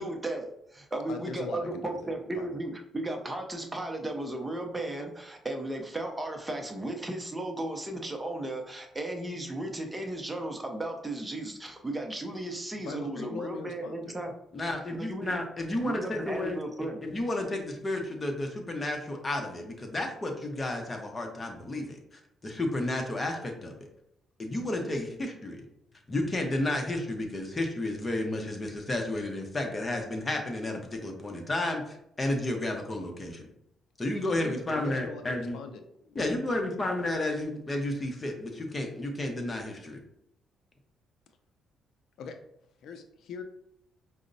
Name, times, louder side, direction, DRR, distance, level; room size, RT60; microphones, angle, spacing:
voice 1, 0.0-14.3 15.0-15.3 15.8-17.0, right 1 dB, 15° right, 3 dB, 0.5 m, -35 dB
voice 2, 1.1-2.0 2.3-2.6 12.8-14.2 15.6-15.8 34.3-36.6 42.2-42.4 42.8-43.4, left 5 dB, 75° left, 6 dB, 0.3 m, -41 dB
voice 3, 14.5-16.6 17.0-23.7 24.4-25.6 26.1-33.4 34.0-35.6 36.2-40.0, left 1 dB, 25° left, 3 dB, 0.7 m, -32 dB
4.8 x 2.0 x 2.6 m, 0.78 s
cardioid pair, 90°, 0 cm